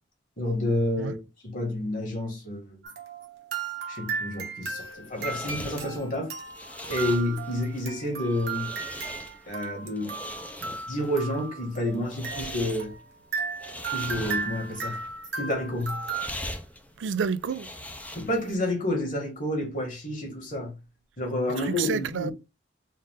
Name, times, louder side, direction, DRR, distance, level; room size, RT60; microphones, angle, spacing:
voice 1, 0.4-1.2 1.4-2.8 3.9-6.3 6.9-8.7 9.5-10.2 10.6-12.9 13.9-15.0 15.4-16.0 18.1-20.8 21.2-22.3, left 1 dB, 50° left, 1.8 m, -29 dB
sound 1, 2.8-16.3, right 5 dB, 65° right, 1.0 m, -36 dB
sound 2, 4.7-18.6, left 1 dB, 10° left, 0.5 m, -41 dB
voice 2, 17.0-17.7 21.6-22.3, right 6 dB, 90° right, 0.4 m, -29 dB
4.0 x 2.5 x 3.7 m
head